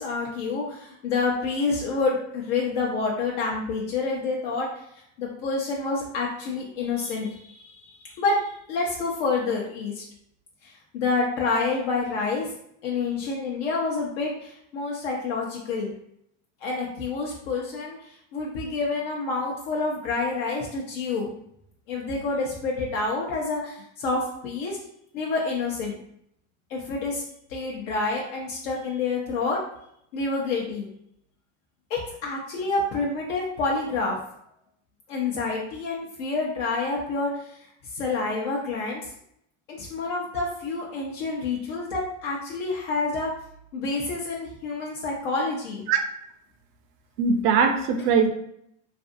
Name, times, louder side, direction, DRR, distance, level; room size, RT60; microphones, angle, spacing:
voice 1, 0.0-4.7 5.2-10.0 10.6-12.5 12.8-15.9 16.6-18.0 18.3-21.3 21.9-24.8 25.1-26.0 26.7-27.2 27.5-29.6 30.1-30.9 31.9-34.2 35.1-37.5 37.9-39.0 39.7-43.3 43.7-45.8, left 3 dB, 75° left, -2 dB, 0.7 m, -28 dB
voice 2, 47.2-48.3, right 5 dB, 65° right, 6 dB, 0.6 m, -21 dB
2.6 x 2.5 x 2.5 m, 0.72 s
supercardioid pair, 110°, 37 cm